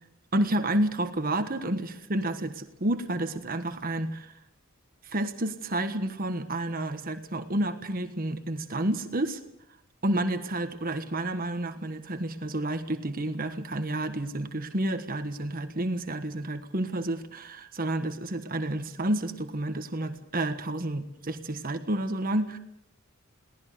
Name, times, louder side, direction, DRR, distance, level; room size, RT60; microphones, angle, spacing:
voice 1, 0.3-4.3 5.0-9.4 10.0-22.6, right 1 dB, 45° right, 8 dB, 1.4 m, -30 dB
22.5 x 18.5 x 6.8 m, 0.77 s
head